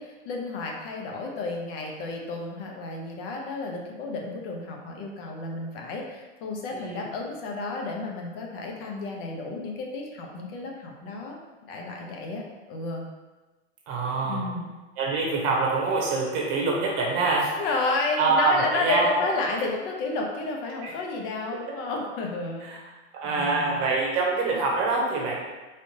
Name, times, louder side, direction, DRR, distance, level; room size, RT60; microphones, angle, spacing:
voice 1, 0.0-12.4 12.7-13.0 14.2-14.7 17.5-22.6 23.2-23.8, left 3 dB, 55° left, 1 dB, 0.8 m, -31 dB
voice 2, 6.7-7.1 13.9-14.4 15.0-17.5 18.2-19.2 20.8-20.9 22.7-22.8 23.1-25.4, right 3 dB, 50° right, -2 dB, 0.9 m, -25 dB
3.4 x 2.8 x 2.7 m, 1.2 s
hypercardioid pair, 110°, 36 cm